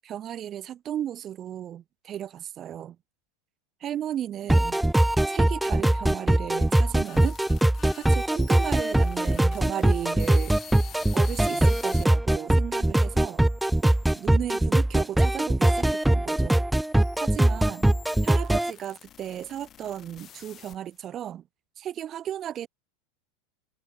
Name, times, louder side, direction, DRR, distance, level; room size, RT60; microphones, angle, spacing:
voice 1, 0.0-3.0 3.8-4.8 5.3-7.4 7.8-10.9 11.1-13.4 13.8-16.6 17.2-17.9 18.2-21.4 21.8-22.7, right 10 dB, 35° right, 2.1 m, -35 dB
sound 1, 4.5-18.7, right 1 dB, 5° right, 0.4 m, -22 dB
sound 2, 6.5-12.0 12.7-14.3 15.1-21.1, left 10 dB, 35° left, 5.4 m, -49 dB
hypercardioid pair, 90°, 0 cm